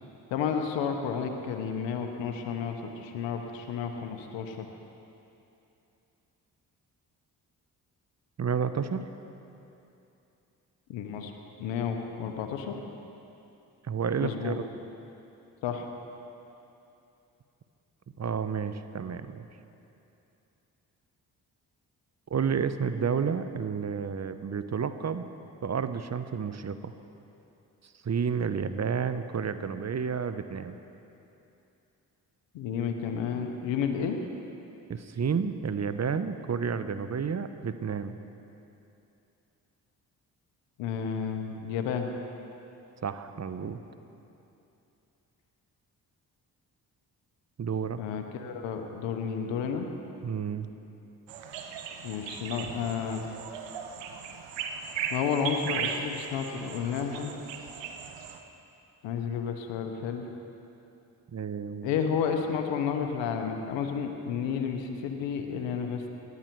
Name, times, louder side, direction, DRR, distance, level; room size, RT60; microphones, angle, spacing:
voice 1, 0.3-4.6 10.9-11.3 11.6-12.8 14.2-14.6 15.6-15.8 32.5-34.2 40.8-42.1 48.0-49.9 52.0-53.2 55.1-57.3 59.0-60.2 61.8-66.0, left 7 dB, 85° left, 4 dB, 1.0 m, -31 dB
voice 2, 8.4-9.1 13.8-14.6 18.2-19.5 22.3-25.3 25.6-26.9 28.0-30.7 34.9-38.2 43.0-43.8 47.6-48.0 50.2-50.7 61.3-61.9, right 6 dB, 35° right, 11 dB, 0.8 m, -30 dB
sound 1, 51.3-58.4, right 6 dB, 75° right, 1.0 m, -37 dB
17.5 x 11.0 x 4.6 m, 2.8 s
hypercardioid pair, 40°, 44 cm